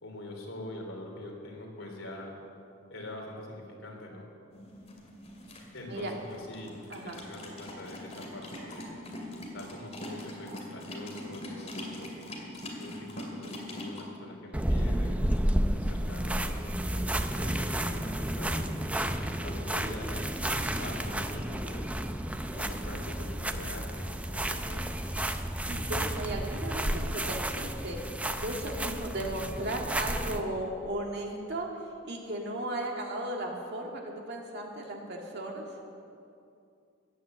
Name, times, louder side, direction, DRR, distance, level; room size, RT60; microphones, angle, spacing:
voice 1, 0.0-2.4 2.9-4.2 5.7-6.7 7.0-9.0 9.5-12.1 12.8-18.9 19.4-20.2 20.7-21.9 22.5-24.1 24.3-25.0, left 1 dB, 75° left, 0 dB, 3.2 m, -44 dB
sound 1, 4.5-14.0, left 1 dB, 30° left, 2.4 m, -43 dB
voice 2, 5.8-6.1 6.9-7.2 25.7-28.0 28.4-31.7 32.0-34.0 34.3-35.7, right 1 dB, 55° right, 0 dB, 2.2 m, -36 dB
sound 2, 14.5-30.4, right 1 dB, 5° right, 0.5 m, -31 dB
15.5 x 10.0 x 7.7 m, 2.6 s
head